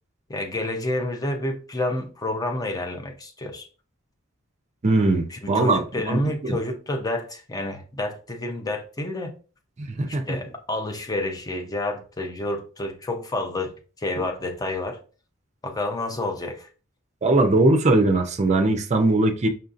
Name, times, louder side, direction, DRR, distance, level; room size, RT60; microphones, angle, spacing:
voice 1, 0.3-3.7 5.3-9.3 10.1-15.0 15.6-16.7, left 2 dB, 20° left, 0.5 m, -29 dB
voice 2, 4.8-6.6 9.8-10.4 14.2-14.3 17.2-19.5, right 2 dB, 35° right, 0.5 m, -21 dB
5.5 x 2.6 x 2.5 m
head